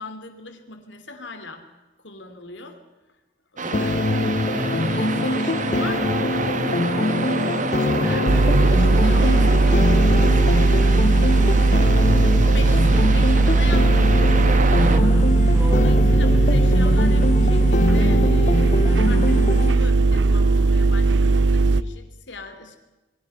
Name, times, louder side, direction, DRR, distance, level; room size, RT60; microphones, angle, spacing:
voice 1, 0.0-1.6 2.0-2.8 3.5-3.8 4.3-6.3 7.8-8.2 8.5-11.9 12.4-14.2 15.7-22.8, left 3 dB, 85° left, 7 dB, 2.8 m, -40 dB
voice 2, 3.6-4.0 7.9-8.6 14.8-16.0 18.8-19.1, left 1 dB, 10° right, 0 dB, 6.7 m, -33 dB
sound 1, 3.6-15.0, right 3 dB, 45° right, 1.5 m, -28 dB
sound 2, 3.7-19.7, left 2 dB, 45° left, 0.8 m, -23 dB
sound 3, 8.3-21.8, right 3 dB, 80° right, 0.7 m, -17 dB
28.0 x 22.0 x 5.6 m, 1.1 s
head